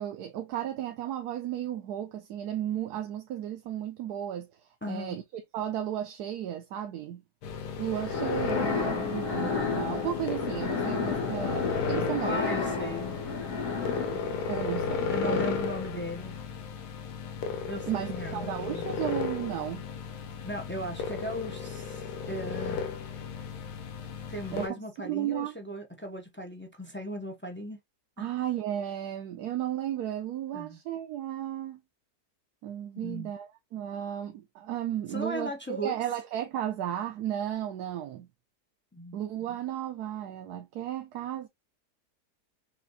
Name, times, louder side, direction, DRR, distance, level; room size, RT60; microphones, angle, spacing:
voice 1, 0.0-4.5 4.9-7.2 7.8-12.4 14.5-15.5 16.0-16.1 17.8-19.8 24.5-25.5 28.2-31.8 32.6-38.3 39.1-41.5, right 11 dB, 75° right, 1.1 m, -34 dB
voice 2, 4.8-5.2 12.2-13.2 15.1-16.4 17.7-18.9 20.4-22.9 24.3-27.8 28.2-28.3 30.5-30.8 33.0-33.3 35.1-35.9 38.9-39.2, equal, 10° left, 0.6 m, -37 dB
sound 1, 7.4-24.7, left 5 dB, 80° left, 1.4 m, -35 dB
sound 2, 7.9-16.0, left 5 dB, 55° left, 1.5 m, -32 dB
5.8 x 2.6 x 2.6 m
omnidirectional pair, 1.7 m